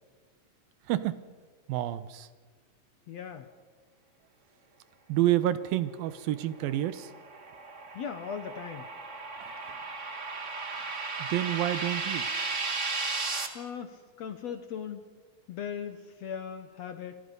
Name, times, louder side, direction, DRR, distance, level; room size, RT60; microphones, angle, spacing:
voice 1, 0.9-1.2 1.7-2.3 5.1-7.1 9.4-9.5 10.7-10.9 11.2-12.3, right 13 dB, 80° right, 14 dB, 2.7 m, -29 dB
voice 2, 3.1-3.5 7.9-8.9 13.5-15.0 15.5-17.2, left 7 dB, 65° left, 8 dB, 1.8 m, -38 dB
sound 1, 6.6-13.5, right 4 dB, 35° right, 1.2 m, -35 dB
30.0 x 25.5 x 5.4 m, 1.5 s
omnidirectional pair, 4.1 m